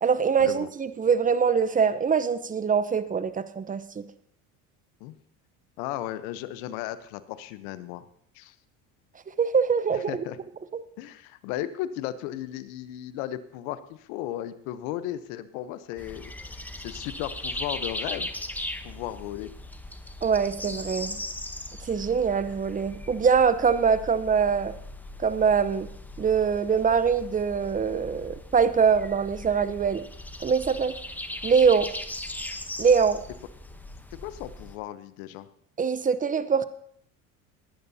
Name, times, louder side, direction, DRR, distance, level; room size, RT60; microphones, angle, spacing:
voice 1, 0.0-4.0 9.4-10.1 20.2-21.2 21.8-24.7 25.2-25.9 26.2-30.0 30.4-31.0 31.4-31.9 32.8-33.2 35.8-36.6, right 6 dB, 20° right, 13 dB, 0.8 m, -23 dB
voice 2, 5.8-8.1 8.3-8.6 9.9-10.4 11.0-18.3 18.8-19.5 34.1-35.5, left 13 dB, 75° left, 13 dB, 1.0 m, -35 dB
sound 1, 16.0-34.8, left 1 dB, 5° left, 0.9 m, -39 dB
18.5 x 11.0 x 2.8 m, 0.66 s
supercardioid pair, 95°, 41 cm